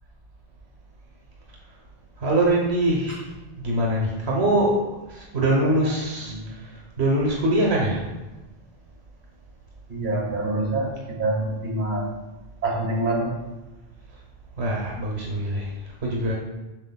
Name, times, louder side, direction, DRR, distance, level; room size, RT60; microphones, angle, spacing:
voice 1, 2.2-3.2 3.6-4.8 5.1-8.1 14.6-15.7 16.0-16.3, right 1 dB, 85° right, -3 dB, 1.3 m, -23 dB
voice 2, 9.9-12.1 12.6-13.3, right 2 dB, 50° right, -2 dB, 2.2 m, -26 dB
8.0 x 6.3 x 2.2 m, 1.1 s
omnidirectional pair, 1.1 m